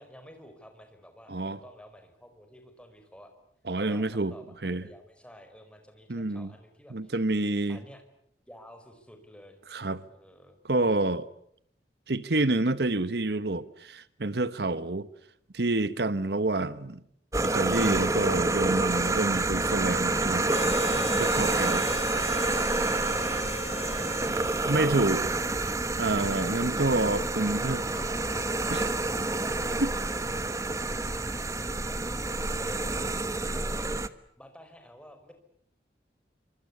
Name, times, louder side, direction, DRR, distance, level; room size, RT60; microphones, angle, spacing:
voice 1, 0.0-3.3 3.8-7.2 7.7-8.0 8.5-9.6 10.1-10.6 23.8-24.0 24.6-25.6 26.3-26.9 27.4-28.5 29.2-29.6 30.0-31.4 31.8-32.0 32.6-33.1 33.5-34.1 34.4-35.3, equal, 5° left, 4.8 m, -50 dB
voice 2, 1.3-1.6 3.7-4.3 4.6-4.8 6.1-6.5 6.9-7.8 9.7-10.0 10.7-11.3 12.1-15.1 15.5-17.0 17.4-20.6 21.2-21.8 24.7-25.3 26.0-27.8 28.7-28.9 29.8-29.9, right 2 dB, 70° right, 1.1 m, -28 dB
sound 1, 17.3-34.1, right 2 dB, 20° right, 1.1 m, -28 dB
Harmonica, 20.4-25.9, left 2 dB, 35° left, 1.3 m, -38 dB
27.5 x 26.0 x 8.5 m
head